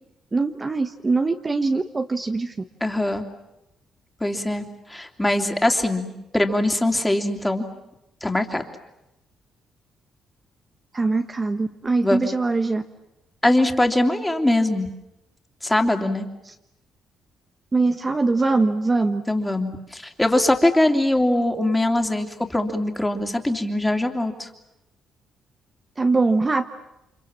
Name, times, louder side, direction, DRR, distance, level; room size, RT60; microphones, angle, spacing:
voice 1, 0.3-2.5 10.9-12.8 16.4-16.5 17.7-19.2 26.0-26.6, right 3 dB, 25° right, 6 dB, 1.1 m, -22 dB
voice 2, 2.8-3.3 4.2-7.6 8.2-8.6 12.0-12.2 13.4-14.9 15.6-16.3 19.3-24.5, left 1 dB, 10° left, 4 dB, 2.9 m, -22 dB
30.0 x 25.5 x 7.4 m, 0.92 s
cardioid pair, 90°, 0 cm